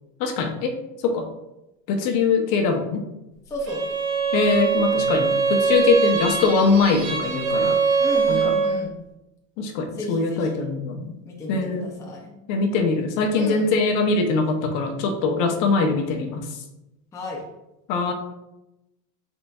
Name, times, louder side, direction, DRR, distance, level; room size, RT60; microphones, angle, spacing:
voice 1, 0.2-0.8 1.0-1.3 1.9-3.0 4.3-7.8 8.3-8.5 9.6-11.2 11.5-11.9 12.5-16.5 17.9-18.1, left 4 dB, 55° left, 5 dB, 0.8 m, -22 dB
voice 2, 3.5-3.8 8.0-9.0 9.9-10.6 11.2-12.3 13.3-13.7 17.1-17.4, left 1 dB, 10° left, -2 dB, 0.4 m, -33 dB
Bowed string instrument, 3.7-8.8, right 5 dB, 55° right, 1.0 m, -22 dB
5.3 x 4.0 x 2.3 m, 0.94 s
cardioid pair, 155°, 39 cm